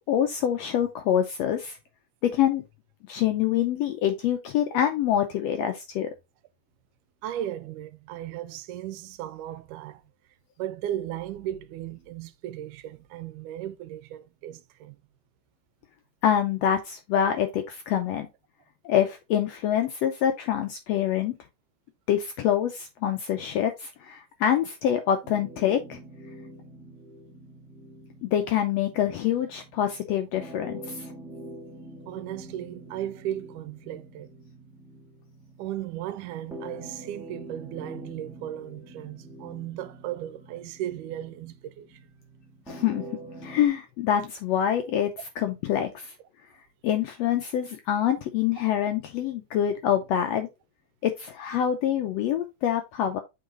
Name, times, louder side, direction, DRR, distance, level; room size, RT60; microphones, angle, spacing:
voice 1, 0.1-1.8 2.2-2.6 3.1-6.1 16.2-18.3 18.8-21.4 22.1-26.0 28.2-31.1 42.7-43.0 43.4-46.1 46.8-50.5 51.0-53.2, left 10 dB, 80° left, 1.5 m, -26 dB
voice 2, 7.2-10.0 10.6-15.0 32.1-34.3 35.6-42.0, right 12 dB, 85° right, 2.1 m, -36 dB
sound 1, 25.2-43.7, right 1 dB, ahead, 0.7 m, -45 dB
7.7 x 4.0 x 3.6 m
omnidirectional pair, 3.6 m